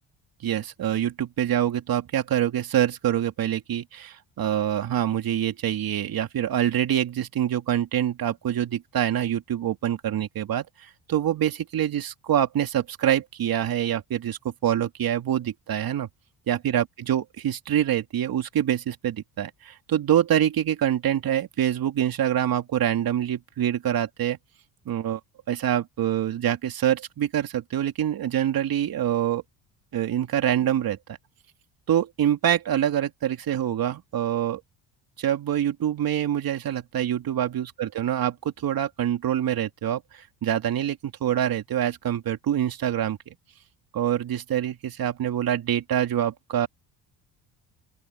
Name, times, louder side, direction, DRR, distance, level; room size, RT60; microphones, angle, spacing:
voice 1, 0.4-10.6 11.1-16.1 16.5-24.4 24.9-25.2 25.5-29.4 29.9-31.2 31.9-34.6 35.2-43.3 43.9-46.7, right 10 dB, 55° right, 2.9 m, -25 dB
open air
supercardioid pair, 75°, 43 cm